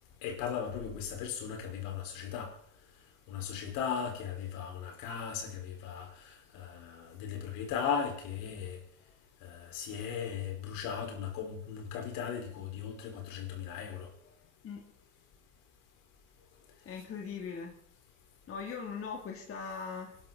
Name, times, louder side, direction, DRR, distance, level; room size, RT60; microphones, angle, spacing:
voice 1, 0.2-2.5 3.3-6.1 6.5-8.8 9.4-14.1, left 7 dB, 65° left, 4.9 m, -37 dB
voice 2, 16.8-17.8 18.5-20.2, left 5 dB, 40° left, 3.0 m, -40 dB
27.0 x 12.0 x 4.1 m
hypercardioid pair, 90°, 36 cm